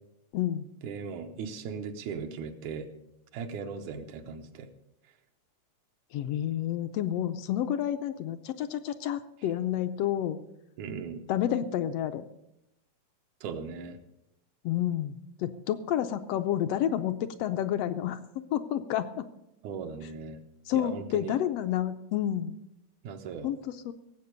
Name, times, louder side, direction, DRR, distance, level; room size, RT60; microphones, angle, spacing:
voice 1, 0.3-0.7 6.1-10.4 11.3-12.2 14.6-18.2 18.5-19.3 20.7-22.6 23.4-23.9, left 11 dB, 75° left, 10 dB, 1.5 m, -30 dB
voice 2, 0.8-2.9 3.3-4.7 10.8-11.3 13.4-14.0 19.6-20.4 20.7-21.4 23.0-23.5, right 5 dB, 85° right, 5 dB, 2.4 m, -38 dB
17.0 x 7.9 x 6.7 m, 0.85 s
omnidirectional pair, 3.3 m